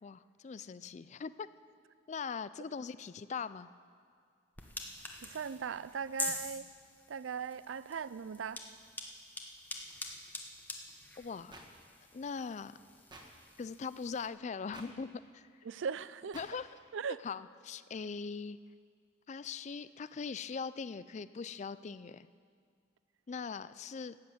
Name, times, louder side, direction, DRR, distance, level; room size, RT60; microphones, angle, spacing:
voice 1, 0.0-1.5 2.1-3.7 11.2-11.6 12.1-12.8 13.6-15.5 16.3-16.7 17.2-18.6 19.3-22.3 23.3-24.2, left 5 dB, 40° left, 15 dB, 0.3 m, -41 dB
sound 1, 4.6-14.3, left 2 dB, 10° left, 1.0 m, -45 dB
voice 2, 5.2-6.6 7.1-8.6 15.7-16.4 16.9-17.2, right 6 dB, 85° right, 16 dB, 0.4 m, -38 dB
sound 2, 11.5-11.7 13.1-13.2 14.7-14.9 16.3-16.5, right 2 dB, 25° right, 1.6 m, -50 dB
13.5 x 9.2 x 7.9 m, 2.1 s
head